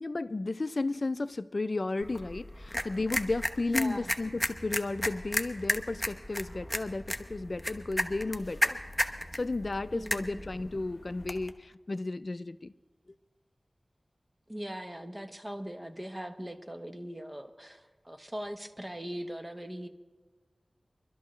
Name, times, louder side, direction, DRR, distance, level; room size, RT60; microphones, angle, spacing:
voice 1, 0.0-8.8 9.3-12.7, left 3 dB, 60° left, 0.4 m, -33 dB
sound 1, 2.0-11.5, equal, 5° left, 0.9 m, -35 dB
voice 2, 3.7-4.1 9.9-10.4 14.5-19.9, equal, 20° right, 1.0 m, -40 dB
24.5 x 12.5 x 3.2 m
wide cardioid pair, 55°, 0 cm